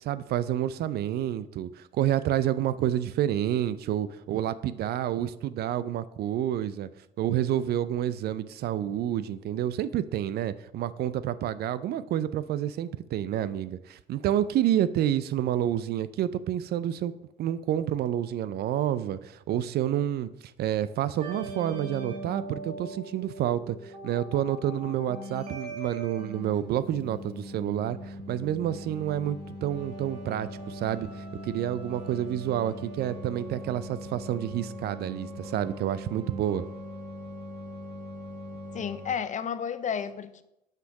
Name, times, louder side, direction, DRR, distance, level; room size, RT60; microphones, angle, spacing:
voice 1, 0.0-6.9 7.2-17.1 17.4-20.3 20.6-36.6, right 11 dB, 50° right, 0.4 m, -29 dB
sound 1, 21.2-39.1, equal, 85° right, 0.9 m, -41 dB
voice 2, 38.7-40.4, left 7 dB, 40° left, 0.6 m, -32 dB
5.8 x 5.7 x 5.0 m
hypercardioid pair, 55°, 20 cm